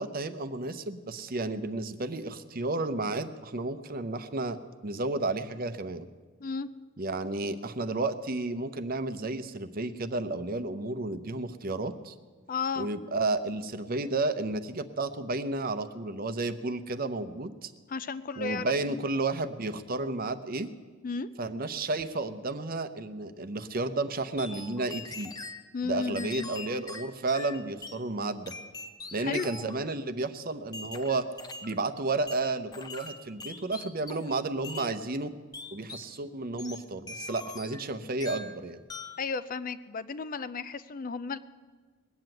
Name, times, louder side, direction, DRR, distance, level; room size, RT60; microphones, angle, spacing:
voice 1, 0.0-4.6 4.8-6.1 7.0-12.1 12.8-17.7 18.4-20.7 21.4-25.3 25.8-28.5 29.1-31.3 31.6-35.3 35.7-38.8, right 2 dB, 45° right, 11 dB, 0.7 m, -32 dB
voice 2, 12.5-12.9 17.9-19.0 21.0-21.3 25.7-26.5 29.2-29.5 39.2-41.4, left 4 dB, 40° left, 14 dB, 0.5 m, -34 dB
sound 1, 24.4-25.6 26.2-28.0 28.5-29.9 30.7-31.8 32.3-34.4 34.6-34.9 35.5-36.1 36.6-37.9 38.2-38.6 38.9-39.2, left 3 dB, 20° left, 0.8 m, -42 dB
20.0 x 7.8 x 9.0 m, 1.4 s
head